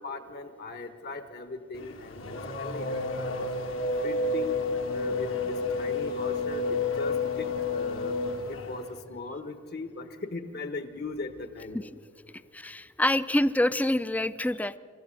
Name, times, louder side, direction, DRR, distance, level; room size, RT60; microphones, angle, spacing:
voice 1, 0.0-3.5 4.0-4.6 4.9-8.1 8.4-11.9, left 3 dB, 50° left, 10 dB, 1.3 m, -39 dB
Race car auto racing / Accelerating revving vroom, 1.7-9.0, left 3 dB, 70° left, 1.7 m, -30 dB
voice 2, 12.5-14.8, left 1 dB, 10° left, 15 dB, 0.4 m, -26 dB
27.0 x 13.5 x 7.6 m, 2.3 s
head